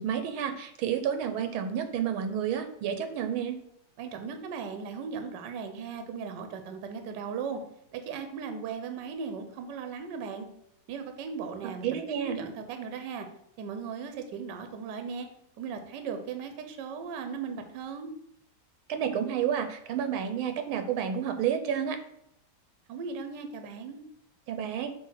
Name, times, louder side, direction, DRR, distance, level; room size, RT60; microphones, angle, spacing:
voice 1, 0.0-3.6 11.8-12.4 18.9-22.0 24.5-24.9, right 8 dB, 90° right, 7 dB, 1.6 m, -30 dB
voice 2, 4.0-7.6 7.9-10.5 10.9-11.9 12.2-13.3 13.6-15.3 15.6-18.1 22.9-24.0, right 5 dB, 65° right, 6 dB, 1.3 m, -37 dB
5.6 x 3.2 x 5.6 m, 0.76 s
omnidirectional pair, 2.2 m